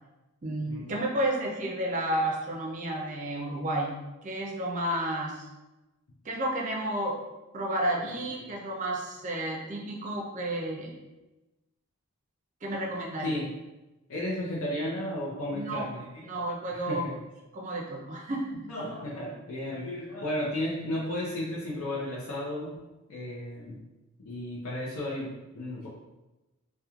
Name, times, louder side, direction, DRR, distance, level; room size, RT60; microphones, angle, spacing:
voice 1, 0.4-5.5 6.2-7.2 7.5-10.9 12.6-13.4 15.5-15.8 16.2-17.1 17.5-18.6, right 1 dB, 35° right, -1 dB, 0.4 m, -31 dB
voice 2, 14.1-16.5 16.9-17.1 18.7-22.7 23.1-23.8 24.2-25.9, left 1 dB, 75° left, -6 dB, 0.5 m, -34 dB
2.9 x 2.2 x 2.3 m, 1.0 s
head